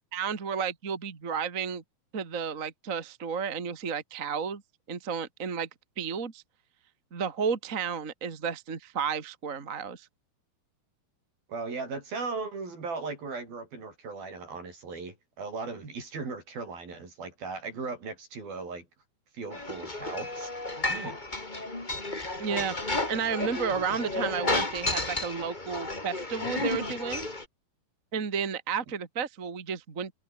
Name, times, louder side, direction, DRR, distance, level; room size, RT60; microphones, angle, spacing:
voice 1, 0.1-1.8 2.1-4.6 4.9-5.7 6.0-6.4 7.1-10.1 22.4-22.7 23.1-27.3 28.1-30.1, right 6 dB, 30° right, 1.7 m, -32 dB
voice 2, 11.5-18.9 19.3-20.5 20.9-21.2, right 4 dB, 65° right, 9.3 m, -37 dB
sound 1, 19.5-27.4, left 2 dB, 15° left, 2.4 m, -32 dB
omnidirectional pair, 4.5 m